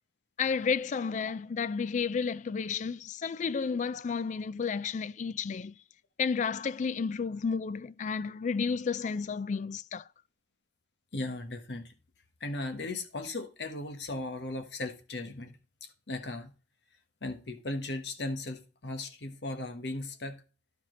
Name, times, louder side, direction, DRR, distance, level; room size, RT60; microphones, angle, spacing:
voice 1, 0.4-5.8 6.2-10.0, left 5 dB, 45° left, 0.3 m, -32 dB
voice 2, 11.1-11.9 12.4-16.5 17.2-20.4, left 2 dB, 75° left, 1.2 m, -37 dB
11.5 x 5.0 x 3.8 m
head